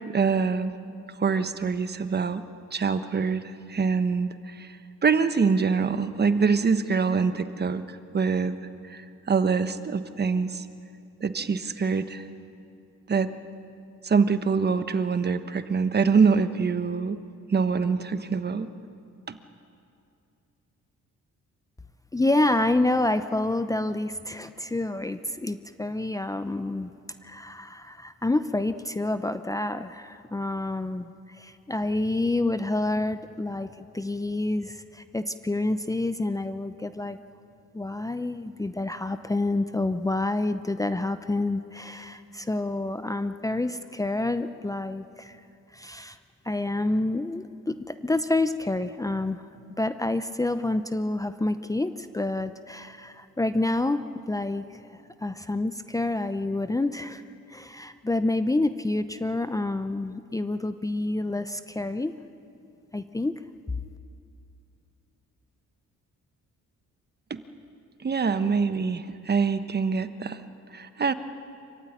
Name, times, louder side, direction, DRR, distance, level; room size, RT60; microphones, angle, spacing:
voice 1, 0.1-0.7 1.2-2.4 2.7-3.4 3.7-8.6 8.9-10.6 11.2-12.3 13.1-13.3 14.0-17.2 17.5-18.7 19.3-19.4 67.3-67.4 68.0-70.4 70.7-71.1, right 5 dB, 35° right, 11 dB, 1.2 m, -25 dB
voice 2, 22.1-26.9 27.2-37.2 37.7-45.4 45.7-46.2 46.4-49.5 49.8-54.6 54.9-57.2 57.5-62.1 62.9-63.4, left 2 dB, 10° left, 10 dB, 0.7 m, -28 dB
26.5 x 15.5 x 9.9 m, 2.5 s
cardioid pair, 90°, 30 cm